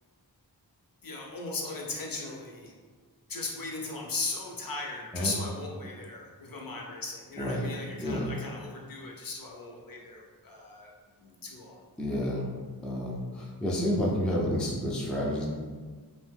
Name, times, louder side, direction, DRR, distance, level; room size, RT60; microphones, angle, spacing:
voice 1, 1.0-2.7 3.3-10.9 11.2-11.8, left 3 dB, 55° left, -1 dB, 0.6 m, -37 dB
voice 2, 7.4-7.7 8.0-8.3 12.0-12.5 12.8-15.5, equal, ahead, -3 dB, 0.4 m, -30 dB
2.6 x 2.1 x 3.3 m, 1.5 s
wide cardioid pair, 65°, 41 cm